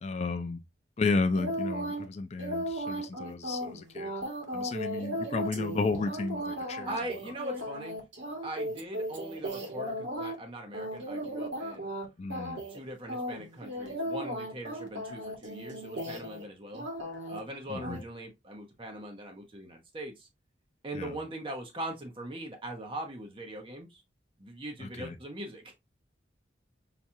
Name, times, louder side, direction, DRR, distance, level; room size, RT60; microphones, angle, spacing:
voice 1, 0.0-0.6 1.0-4.1 4.5-6.9 12.2-12.6 17.7-18.0 20.9-21.1 24.8-25.2, left 3 dB, 35° left, 0.4 m, -32 dB
sound 1, 1.3-2.0 2.4-10.4 10.7-12.0 12.3-12.8 13.1-16.4 16.7-17.4 17.8-18.0, equal, 75° right, 1.4 m, -36 dB
voice 2, 6.8-7.9 8.4-11.9 12.7-16.9 17.3-20.3 20.8-24.0 24.4-25.7, right 1 dB, 30° right, 0.8 m, -41 dB
5.8 x 2.3 x 2.7 m
head